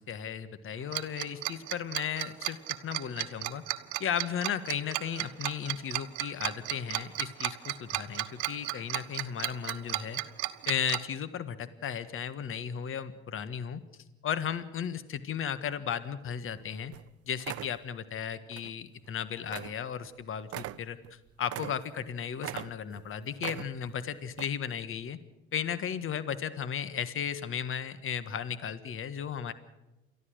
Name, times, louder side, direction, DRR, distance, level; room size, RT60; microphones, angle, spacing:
voice 1, 0.0-2.6 2.8-3.6 4.0-10.2 10.7-13.8 14.2-16.9 17.2-25.2 25.5-29.5, left 8 dB, 40° left, 13 dB, 1.6 m, -35 dB
Tick-tock, 0.9-11.0, right 19 dB, 65° right, 1.2 m, -33 dB
sound 1, 16.5-16.6 16.9-17.1 17.4-17.8 18.5-18.7 19.0-19.1 19.5-19.8 20.0-20.1 20.5-22.1 22.4-23.1 23.4-24.0 24.3-24.5, right 14 dB, 45° right, 0.7 m, -40 dB
29.5 x 14.0 x 6.4 m, 1.0 s
hypercardioid pair, 70°, 32 cm